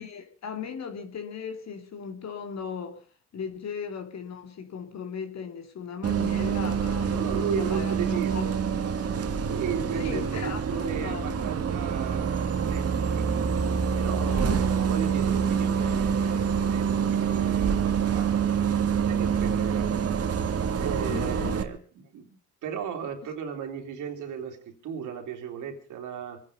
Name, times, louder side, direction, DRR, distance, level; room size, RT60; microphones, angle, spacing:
voice 1, 0.0-3.0 3.3-8.8 10.0-11.4 14.3-14.7 21.1-21.5, left 6 dB, 60° left, 3.0 m, -37 dB
Bus, 6.0-21.6, right 7 dB, 55° right, 1.9 m, -26 dB
voice 2, 7.1-8.6 9.4-13.3 13.9-26.4, right 7 dB, 80° right, 3.4 m, -36 dB
25.0 x 9.8 x 5.3 m
cardioid pair, 90°, 30 cm